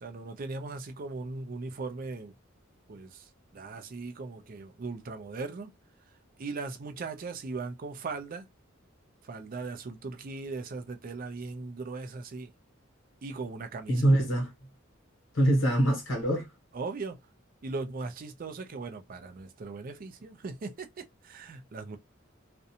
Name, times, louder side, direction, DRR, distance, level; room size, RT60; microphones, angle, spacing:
voice 1, 0.0-2.3 2.9-5.8 6.4-8.5 9.2-12.5 13.2-14.0 16.7-17.2 17.6-22.0, right 3 dB, 45° right, 0.4 m, -39 dB
voice 2, 13.9-14.5 15.3-16.5, right 1 dB, 70° left, 1.1 m, -24 dB
2.5 x 2.1 x 2.7 m
head